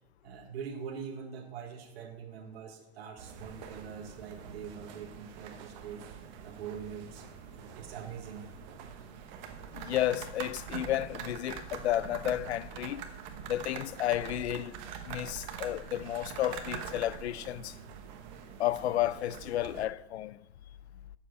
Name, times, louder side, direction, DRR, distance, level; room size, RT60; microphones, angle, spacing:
voice 1, 0.2-6.1 6.4-7.3 7.6-8.5, right 7 dB, 65° right, 1.4 m, -43 dB
sound 1, 3.2-19.9, right 7 dB, 45° right, 1.2 m, -44 dB
voice 2, 9.7-13.0 13.5-14.8 15.0-17.8 18.6-20.4, left 13 dB, 85° left, 0.5 m, -32 dB
7.7 x 7.1 x 7.7 m
hypercardioid pair, 150°, 32 cm